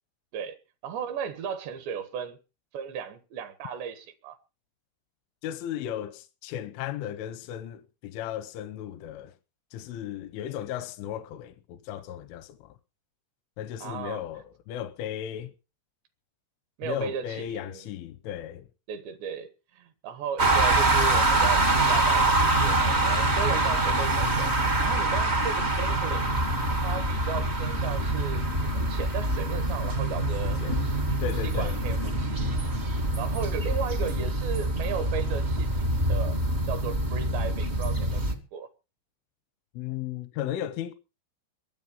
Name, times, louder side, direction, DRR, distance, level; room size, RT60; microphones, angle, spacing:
voice 1, 0.8-2.4 2.7-4.4 13.8-14.2 16.8-17.9 18.9-24.5 24.8-26.4 26.8-32.8 33.2-36.4 36.7-38.2 38.5-38.7, right 7 dB, 70° right, 3.5 m, -36 dB
voice 2, 5.4-9.3 9.7-12.7 13.6-15.5 16.8-18.7 23.0-23.5 30.4-30.8 31.2-31.8 39.8-40.9, left 11 dB, 85° left, 3.4 m, -35 dB
sound 1, 20.4-38.3, right 2 dB, 50° right, 0.7 m, -25 dB
22.5 x 8.3 x 5.5 m
omnidirectional pair, 5.5 m